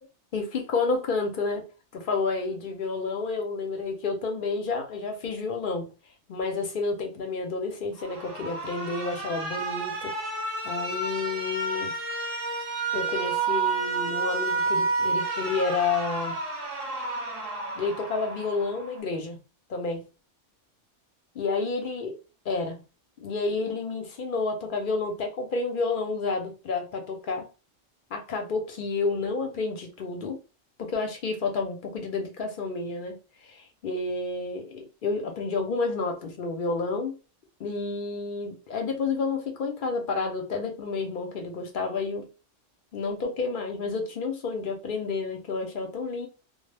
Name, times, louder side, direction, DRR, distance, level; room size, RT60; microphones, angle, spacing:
voice 1, 0.3-1.6 1.9-5.9 6.3-10.1 10.6-11.9 12.9-16.4 17.7-19.4 19.7-20.1 21.3-22.1 22.5-22.8 23.2-27.5 28.1-30.4 30.8-33.2 33.4-37.2 37.6-42.2 42.9-46.3, left 4 dB, 55° left, 0.6 m, -30 dB
Alarm, 8.0-19.0, right 3 dB, 45° right, 0.5 m, -30 dB
2.0 x 2.0 x 3.2 m
omnidirectional pair, 1.3 m